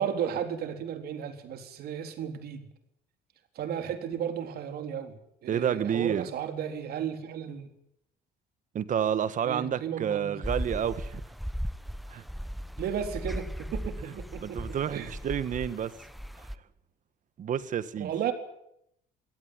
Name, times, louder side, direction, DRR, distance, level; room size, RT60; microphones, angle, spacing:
voice 1, 0.0-2.6 3.5-7.7 9.4-10.3 12.8-15.1 18.0-18.3, right 8 dB, 65° right, 3.9 m, -34 dB
voice 2, 5.5-6.3 8.7-11.2 12.1-12.2 14.0-14.1 14.4-15.9 16.4-16.5 17.4-18.1, right 9 dB, 50° right, 1.5 m, -29 dB
sound 1, 10.4-16.5, equal, ahead, 1.0 m, -37 dB
23.0 x 17.0 x 9.8 m
cardioid pair, 110°, 17 cm